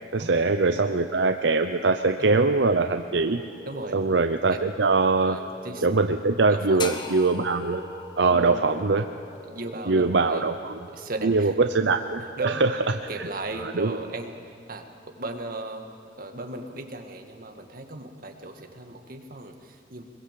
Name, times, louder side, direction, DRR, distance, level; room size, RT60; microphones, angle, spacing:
voice 1, 0.1-3.4 3.9-5.4 5.8-7.8 8.2-9.0 9.9-10.8 11.2-12.7 13.2-13.3 13.6-14.0, right 3 dB, 75° right, 7 dB, 0.7 m, -22 dB
sound 1, 3.2-13.3, right 1 dB, 25° right, 5.1 m, -45 dB
voice 2, 3.7-4.0 4.5-4.6 5.2-5.9 6.5-6.9 8.3-8.7 9.4-10.4 10.9-11.6 12.4-12.8 13.1-15.9 16.2-20.0, right 2 dB, 55° right, 4 dB, 2.1 m, -37 dB
sound 2, 6.8-10.9, left 4 dB, 25° left, 1.2 m, -40 dB
23.5 x 22.0 x 7.7 m, 2.3 s
head